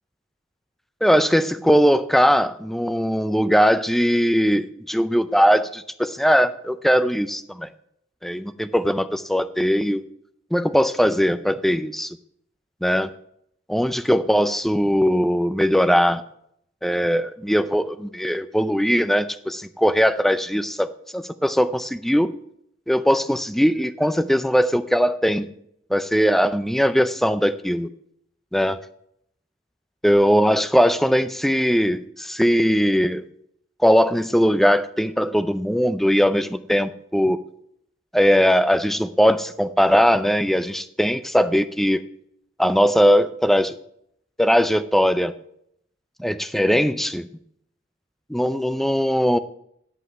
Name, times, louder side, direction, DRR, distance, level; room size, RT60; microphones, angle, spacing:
voice 1, 1.0-7.7 8.2-10.0 10.5-12.2 12.8-13.1 13.7-16.2 16.8-22.3 22.9-25.5 25.9-27.9 28.5-28.8 30.0-33.2 33.8-37.4 38.1-42.0 42.6-43.8 44.4-45.3 46.2-47.3 48.3-49.4, equal, ahead, 12 dB, 0.4 m, -20 dB
9.9 x 5.5 x 7.4 m, 0.72 s
head